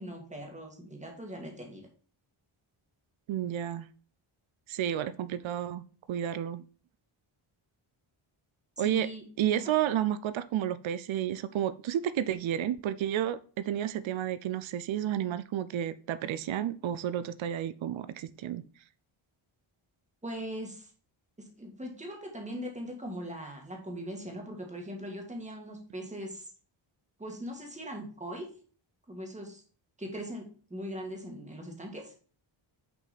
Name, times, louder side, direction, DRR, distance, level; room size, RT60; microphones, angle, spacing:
voice 1, 0.0-1.9 8.8-9.2 9.5-9.7 20.2-20.9 21.6-26.5 27.2-28.5 29.1-29.6 30.0-30.4 30.7-32.1, equal, 15° right, 1 dB, 1.7 m, -40 dB
voice 2, 3.3-3.9 4.7-6.7 8.8-9.1 9.4-18.6, right 10 dB, 70° right, 14 dB, 0.6 m, -31 dB
6.3 x 5.3 x 4.1 m, 0.41 s
wide cardioid pair, 175°, 50 cm